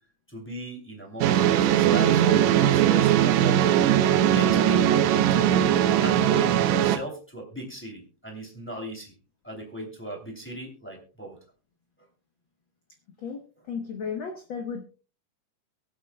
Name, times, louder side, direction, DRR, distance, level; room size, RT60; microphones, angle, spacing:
voice 1, 0.3-3.9 4.3-4.9 5.3-9.1 9.4-11.4, equal, 5° left, 0 dB, 2.1 m, -37 dB
sound 1, 1.2-7.0, right 11 dB, 75° right, 1.7 m, -20 dB
voice 2, 13.2-14.8, left 6 dB, 70° left, 4 dB, 1.1 m, -34 dB
23.0 x 8.2 x 2.2 m, 0.34 s
omnidirectional pair, 3.8 m